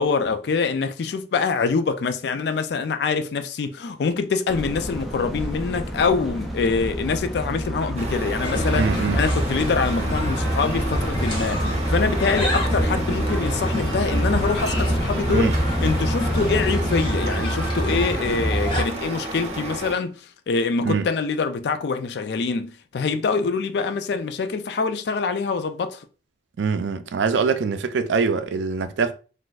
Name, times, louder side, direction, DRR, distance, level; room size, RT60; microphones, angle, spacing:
voice 1, 0.0-8.8 9.1-26.0, left 4 dB, 65° left, 0.3 m, -25 dB
sound 1, 4.5-16.8, equal, ahead, 0.4 m, -30 dB
Truck, 8.0-20.0, right 2 dB, 35° right, 0.6 m, -33 dB
sound 2, 8.4-18.8, equal, 30° left, 0.9 m, -25 dB
voice 2, 8.7-9.2 15.3-15.6 20.8-21.1 26.6-29.1, right 5 dB, 80° right, 0.4 m, -23 dB
3.9 x 2.5 x 2.4 m
head